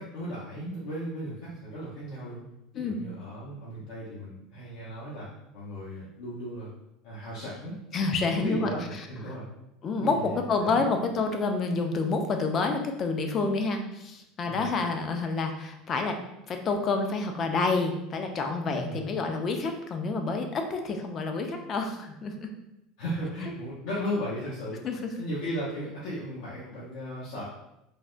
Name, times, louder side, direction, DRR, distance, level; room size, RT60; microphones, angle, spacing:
voice 1, 0.0-2.4 2.7-5.3 5.5-6.7 7.0-7.7 8.3-9.4 10.0-10.9 14.4-14.6 18.6-19.0 23.0-24.8 25.2-27.4, equal, 80° left, -8 dB, 0.7 m, -36 dB
voice 2, 7.9-9.0 9.8-16.2 16.5-22.5 24.8-25.1, left 3 dB, 30° left, 5 dB, 0.3 m, -28 dB
3.3 x 2.1 x 2.4 m, 0.86 s
cardioid pair, 165°, 0 cm